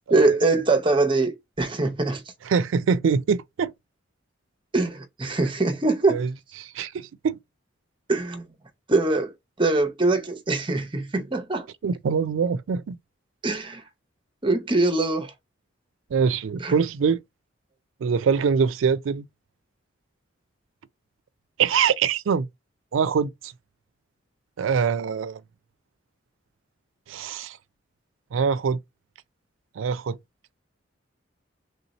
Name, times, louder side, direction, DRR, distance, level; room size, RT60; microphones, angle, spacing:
voice 1, 0.1-2.2 4.7-6.2 8.1-8.5 8.9-11.7 13.4-13.8 14.4-15.3 16.6-16.8, right 3 dB, 25° right, 0.7 m, -23 dB
voice 2, 2.5-3.7 6.1-6.3 6.6-7.4 11.8-13.0 16.1-17.2 18.0-19.3 21.6-22.5 22.9-23.5 24.6-25.4 27.1-27.6 28.3-28.8 29.8-30.2, right 6 dB, 80° right, 0.4 m, -24 dB
3.4 x 2.7 x 4.0 m
head